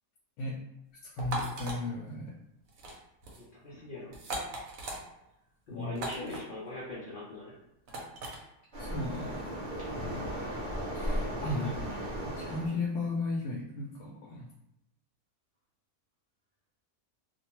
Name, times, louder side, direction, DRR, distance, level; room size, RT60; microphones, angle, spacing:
voice 1, 1.0-2.3 5.7-6.0 8.8-9.5 10.9-11.7 12.2-14.5, left 2 dB, 80° left, -3 dB, 1.1 m, -35 dB
sound 1, 1.2-1.8 2.7-3.0 3.2-3.4 4.1-5.0 5.9-6.4 7.9-8.4, right 2 dB, 65° right, 1.0 m, -38 dB
voice 2, 3.4-4.2 5.7-7.5 11.4-11.7, left 2 dB, 55° left, -8 dB, 0.6 m, -41 dB
Waves surf, 8.7-12.7, equal, 50° right, 0.6 m, -36 dB
2.6 x 2.2 x 2.9 m, 0.86 s
omnidirectional pair, 1.7 m